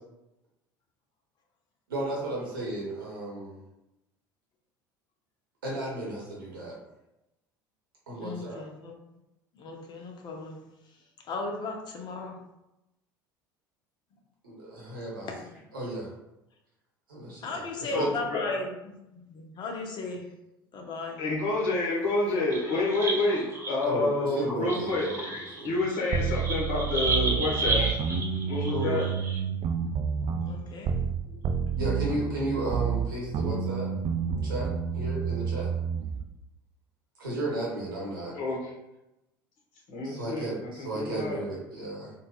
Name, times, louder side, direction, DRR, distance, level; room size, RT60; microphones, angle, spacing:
voice 1, 1.9-3.6 5.6-6.8 8.1-8.6 14.4-15.3 15.7-16.1 17.1-18.1 23.9-25.7 28.7-29.1 31.2-33.9 34.4-35.7 37.2-38.4 40.0-42.1, right 1 dB, 85° right, -5 dB, 1.1 m, -34 dB
voice 2, 8.1-8.9 9.5-10.6 11.3-12.4 15.2-15.5 17.4-20.3 20.7-21.2 30.4-30.9, left 3 dB, 40° left, 1 dB, 0.8 m, -36 dB
voice 3, 17.9-18.5 21.2-28.0 28.5-29.0 38.3-38.7 39.9-41.4, left 2 dB, 60° left, -3 dB, 1.3 m, -29 dB
sound 1, 22.4-23.9 24.4-29.4, right 2 dB, 20° right, 1.0 m, -32 dB
sound 2, 26.1-31.2 31.4-36.2, right 6 dB, 45° right, 0.4 m, -29 dB
4.0 x 2.4 x 2.3 m, 0.91 s
hypercardioid pair, 70°, 11 cm